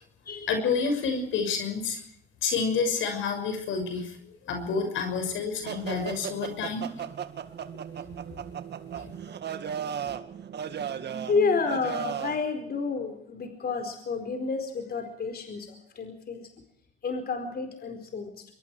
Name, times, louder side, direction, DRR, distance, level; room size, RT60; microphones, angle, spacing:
voice 1, 0.5-2.0 2.4-4.2 4.5-6.9 9.0-9.1, left 5 dB, 80° left, 6 dB, 6.3 m, -29 dB
sound 1, 5.6-12.5, right 8 dB, 60° right, 1.9 m, -36 dB
voice 2, 11.3-16.5 17.0-18.4, left 4 dB, 50° left, 5 dB, 4.6 m, -30 dB
25.0 x 22.5 x 4.8 m, 0.69 s
cardioid pair, 90°, 20 cm